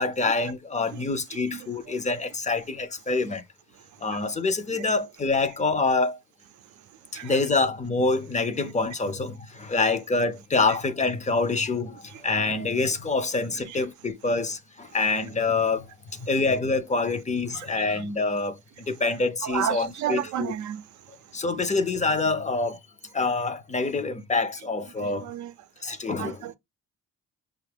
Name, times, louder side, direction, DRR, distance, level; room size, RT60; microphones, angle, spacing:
voice 1, 0.0-3.4 4.0-6.2 7.1-15.9 16.2-20.6 21.3-22.8 23.1-25.3 25.8-26.4, left 3 dB, 25° left, 0.5 m, -26 dB
voice 2, 17.5-17.9 19.4-20.8 25.0-25.5 25.9-26.6, right 10 dB, 70° right, 0.5 m, -32 dB
5.4 x 2.4 x 3.3 m
cardioid pair, 90°, 30 cm